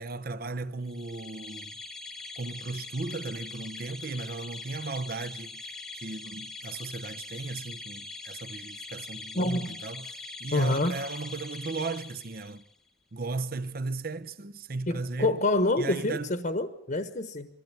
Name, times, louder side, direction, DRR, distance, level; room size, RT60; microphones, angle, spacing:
voice 1, 0.0-1.7 2.4-5.6 5.9-12.6 13.1-15.4 15.8-16.3, right 3 dB, 55° right, 0.8 m, -36 dB
sound 1, 0.9-12.7, left 3 dB, ahead, 0.7 m, -42 dB
voice 2, 9.4-9.8 10.5-11.0 14.9-17.5, left 2 dB, 45° left, 1.1 m, -27 dB
23.0 x 15.5 x 8.8 m
head